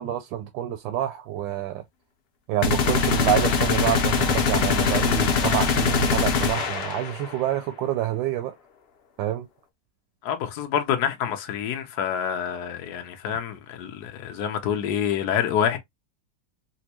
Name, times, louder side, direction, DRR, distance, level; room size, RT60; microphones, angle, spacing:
voice 1, 0.0-1.8 2.5-8.5 9.2-9.5, right 11 dB, 85° right, 1.3 m, -27 dB
sound 1, 2.6-7.4, left 5 dB, 80° left, 0.5 m, -22 dB
voice 2, 10.2-15.8, left 9 dB, 65° left, 1.2 m, -27 dB
4.3 x 2.2 x 2.8 m
omnidirectional pair, 2.0 m